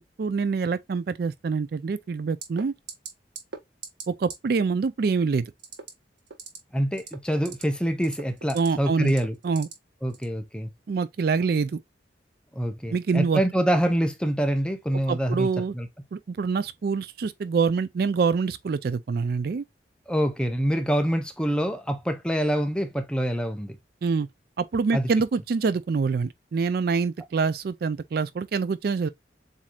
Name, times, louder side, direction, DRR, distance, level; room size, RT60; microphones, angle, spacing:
voice 1, 0.0-2.7 4.1-5.4 8.5-9.1 9.4-9.7 10.9-11.8 12.9-13.4 15.1-15.7 16.1-19.6 24.0-24.3 24.6-29.1, right 5 dB, 55° right, 0.3 m, -25 dB
sound 1, 2.4-2.6 2.9-3.1 3.4-3.6 3.8-4.0 4.3-4.4 5.6-5.9 6.3-6.6 6.9-7.6 8.0-8.7 9.1-9.7 10.1-10.3, right 5 dB, 80° right, 1.2 m, -38 dB
voice 2, 6.7-9.4 10.0-10.7 12.6-15.5 15.7-15.9 20.1-23.7 24.9-25.1, equal, 5° left, 0.6 m, -25 dB
7.3 x 2.7 x 2.3 m
head